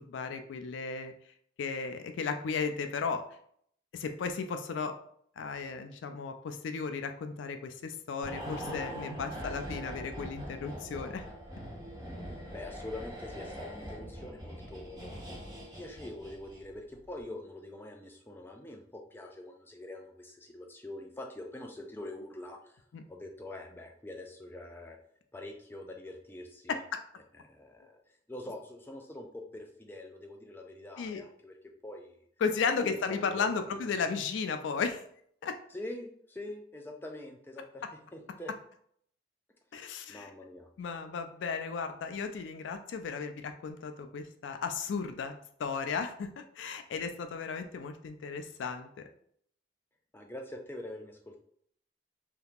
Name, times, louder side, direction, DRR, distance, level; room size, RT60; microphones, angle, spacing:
voice 1, 0.1-1.1 1.6-3.2 3.9-4.9 5.4-11.2 22.9-23.0 26.7-27.0 31.0-31.2 32.4-35.0 35.4-35.6 39.7-40.3 40.8-49.0, left 5 dB, 80° left, 7 dB, 0.3 m, -35 dB
sound 1, 8.2-16.8 17.0-17.2, equal, 20° right, 1.0 m, -42 dB
voice 2, 12.2-15.2 15.7-22.8 23.1-25.0 25.3-26.8 27.3-28.0 28.3-31.5 31.8-32.3 32.7-34.0 35.7-37.8 38.1-38.5 40.1-40.7 50.1-51.4, left 1 dB, 10° left, 2 dB, 0.4 m, -44 dB
2.8 x 2.3 x 3.4 m, 0.65 s
head